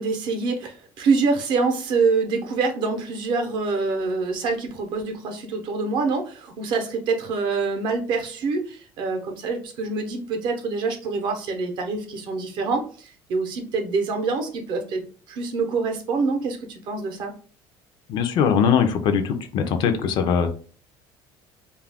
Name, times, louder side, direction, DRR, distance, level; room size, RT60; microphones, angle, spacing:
voice 1, 0.0-17.3, right 4 dB, 55° right, 4 dB, 0.6 m, -25 dB
voice 2, 18.1-20.5, left 7 dB, 50° left, 7 dB, 0.4 m, -21 dB
2.3 x 2.1 x 3.3 m, 0.40 s
cardioid pair, 155°, 10 cm